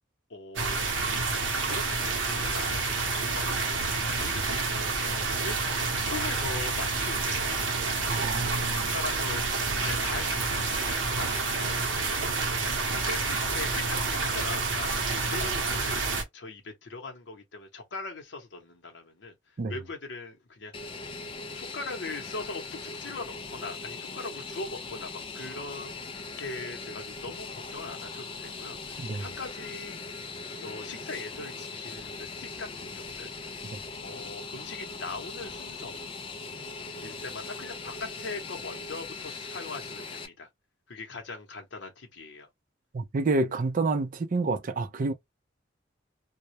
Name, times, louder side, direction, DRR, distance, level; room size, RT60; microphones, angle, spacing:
voice 1, 0.3-0.9 1.6-3.9 4.2-12.5 12.9-16.0 16.3-21.0 21.5-26.1 26.4-30.0 30.5-33.6 34.0-36.0 37.0-40.5 40.9-42.5, left 3 dB, 70° left, 0.8 m, -41 dB
sound 1, 0.6-16.2, right 3 dB, 75° right, 0.7 m, -29 dB
voice 2, 8.1-8.9 19.6-19.7 29.0-29.2 42.9-45.1, right 3 dB, 45° right, 0.4 m, -28 dB
Fixed-wing aircraft airplane, 20.7-40.3, left 4 dB, 30° left, 0.3 m, -40 dB
2.2 x 2.0 x 2.7 m
head